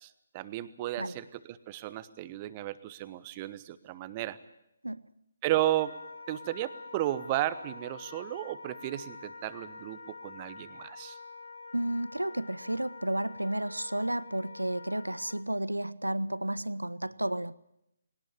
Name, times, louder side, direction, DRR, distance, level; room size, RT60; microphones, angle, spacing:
voice 1, 0.0-4.4 5.4-5.9 6.3-11.2, right 14 dB, 25° right, 1.0 m, -34 dB
Wind instrument woodwind instrument, 5.6-15.5, left 3 dB, 55° left, 2.4 m, -47 dB
voice 2, 11.7-17.5, right 1 dB, 80° right, 0.8 m, -32 dB
21.0 x 18.5 x 8.7 m
figure-of-eight pair, 145°, 0 cm